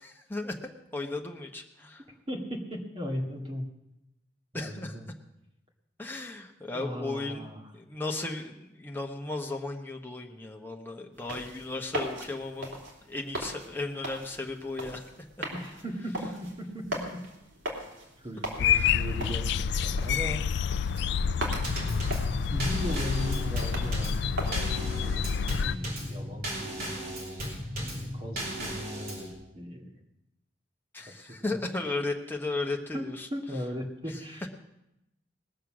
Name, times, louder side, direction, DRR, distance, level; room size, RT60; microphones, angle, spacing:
voice 1, 0.0-2.0 4.5-5.0 6.0-7.5 7.7-12.8 13.1-15.1 18.7-19.0 30.9-33.3, left 2 dB, 10° left, 1 dB, 1.2 m, -35 dB
voice 2, 2.3-3.7 4.5-5.1 6.7-7.7 15.5-17.2 18.2-20.4 20.7-21.1 22.1-25.2 25.5-29.9 31.2-31.6 31.9-32.0 32.9-34.5, equal, 30° right, 0 dB, 2.0 m, -38 dB
sound 1, 11.2-24.5, right 1 dB, 85° right, 2.9 m, -40 dB
sound 2, 18.6-25.8, left 6 dB, 60° left, 0.4 m, -28 dB
Drum kit / Snare drum / Bass drum, 21.6-29.3, equal, 50° right, 3.2 m, -36 dB
20.0 x 6.7 x 6.3 m, 0.87 s
head